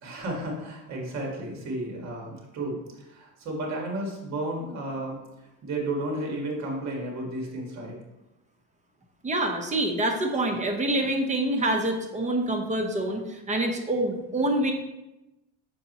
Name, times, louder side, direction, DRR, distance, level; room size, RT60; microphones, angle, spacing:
voice 1, 0.0-5.2 5.6-8.0, right 1 dB, 55° right, 0 dB, 1.7 m, -33 dB
voice 2, 9.2-14.7, right 1 dB, 20° right, 4 dB, 0.9 m, -26 dB
7.0 x 5.1 x 3.0 m, 0.97 s
cardioid pair, 110°, 33 cm